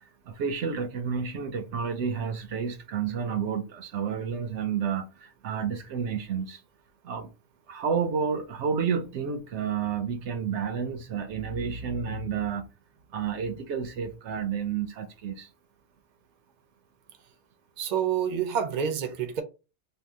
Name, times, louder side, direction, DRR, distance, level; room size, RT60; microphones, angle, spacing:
voice 1, 0.3-6.6 7.0-7.3 7.7-12.7 13.1-15.5, right 6 dB, 80° right, 0.9 m, -30 dB
voice 2, 17.8-19.4, right 8 dB, 50° right, 0.6 m, -28 dB
2.7 x 2.2 x 3.4 m
omnidirectional pair, 1.2 m